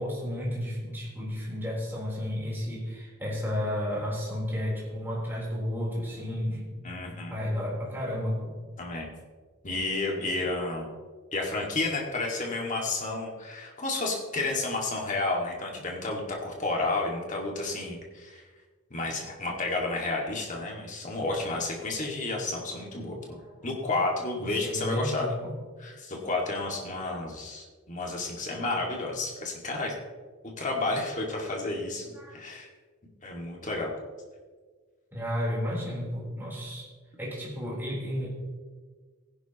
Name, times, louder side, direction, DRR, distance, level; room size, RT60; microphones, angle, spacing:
voice 1, 0.0-6.7 7.1-8.6 10.1-10.3 19.4-19.5 23.2-23.5 24.5-25.6 32.1-32.4 35.1-36.9 37.2-38.3, left 1 dB, 10° right, -6 dB, 3.9 m, -32 dB
voice 2, 6.8-7.4 8.8-9.1 9.6-10.9 11.3-18.4 18.9-23.4 23.6-25.3 25.8-29.9 30.6-32.7 33.2-33.9, left 2 dB, 35° left, -1 dB, 2.1 m, -31 dB
16.5 x 11.0 x 3.0 m, 1.5 s
head